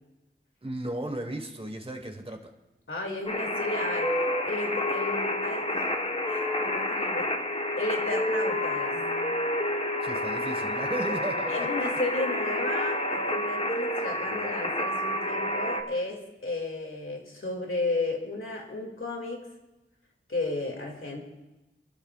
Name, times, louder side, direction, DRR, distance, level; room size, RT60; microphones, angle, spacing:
voice 1, 0.6-2.5 10.0-11.7, right 1 dB, 25° right, 4 dB, 1.4 m, -35 dB
voice 2, 2.9-4.2 4.4-5.9 6.2-7.4 7.8-8.9 11.5-19.6 20.3-21.2, left 2 dB, 80° left, 1 dB, 2.4 m, -33 dB
sound 1, 3.3-15.8, left 1 dB, 30° left, 1.2 m, -29 dB
27.0 x 12.5 x 2.4 m, 1.0 s
wide cardioid pair, 45°, 21 cm